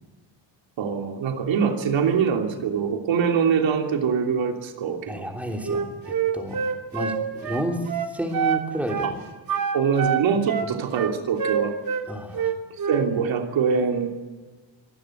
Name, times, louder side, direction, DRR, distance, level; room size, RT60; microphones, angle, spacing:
voice 1, 0.8-5.3 9.0-9.1 9.7-11.8 12.9-14.1, right 6 dB, 75° right, 3 dB, 3.1 m, -23 dB
voice 2, 5.1-6.6 6.9-7.8 8.1-9.2 12.1-12.5, right 1 dB, 5° right, 1 dB, 3.2 m, -30 dB
Wind instrument woodwind instrument, 5.6-8.6 8.9-9.2 9.5-12.0 12.3-13.1, right 7 dB, 50° right, 2.7 m, -26 dB
24.5 x 19.0 x 9.2 m, 1.3 s
cardioid pair, 175°, 45 cm